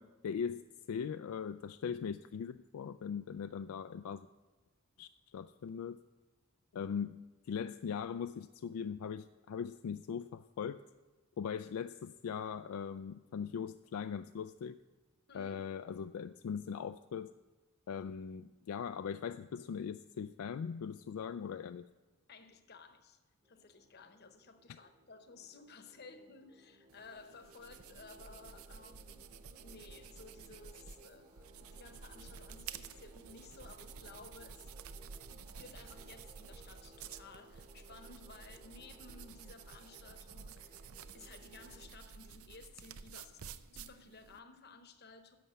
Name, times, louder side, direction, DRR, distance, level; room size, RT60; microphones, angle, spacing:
voice 1, 0.0-4.3 5.0-6.0 6.7-10.8 11.4-14.8 15.3-17.3 17.9-21.8, left 7 dB, 85° left, 11 dB, 0.3 m, -40 dB
voice 2, 22.3-23.2 23.4-34.7 35.0-45.4, left 4 dB, 50° left, 9 dB, 0.9 m, -56 dB
sound 1, 23.4-41.9, right 1 dB, 25° right, 1.1 m, -62 dB
sound 2, 26.9-44.4, right 6 dB, 80° right, 0.6 m, -52 dB
11.0 x 6.9 x 7.5 m, 1.3 s
head